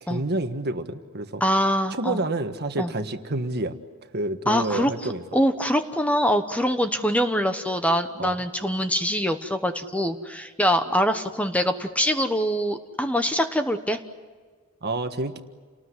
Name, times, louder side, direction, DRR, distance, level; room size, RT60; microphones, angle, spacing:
voice 1, 0.0-1.4 1.9-3.7 4.1-5.2 8.2-8.3 14.8-15.4, right 2 dB, 50° right, 7 dB, 1.6 m, -28 dB
voice 2, 1.4-2.2 2.8-2.9 4.5-14.0, equal, 5° left, 8 dB, 1.1 m, -24 dB
29.5 x 19.5 x 9.8 m, 1.5 s
head